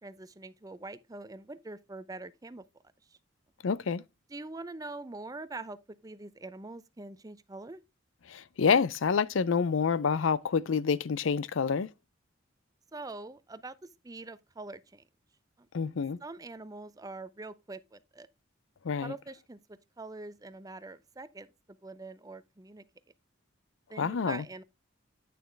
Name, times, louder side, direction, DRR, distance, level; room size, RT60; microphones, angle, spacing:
voice 1, 0.0-2.6 3.1-3.2 4.3-7.8 12.9-15.0 15.6-15.7 16.2-18.3 19.0-19.6 20.0-21.5 21.8-22.8 23.9-24.6, right 2 dB, 20° right, 0.5 m, -44 dB
voice 2, 3.6-4.0 8.3-11.9 15.7-16.2 18.8-19.1 24.0-24.4, left 6 dB, 75° left, 0.5 m, -27 dB
9.3 x 6.3 x 3.3 m
head